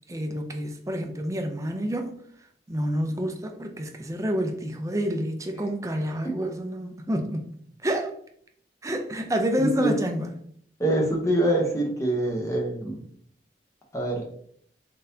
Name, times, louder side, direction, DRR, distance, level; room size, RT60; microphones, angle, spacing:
voice 1, 0.1-2.1 2.7-7.5 7.8-8.1 8.8-10.3, equal, 15° right, 0.5 m, -28 dB
voice 2, 9.6-9.9 10.8-13.0 13.9-14.3, right 1 dB, 15° left, 0.8 m, -25 dB
3.9 x 3.8 x 2.7 m
head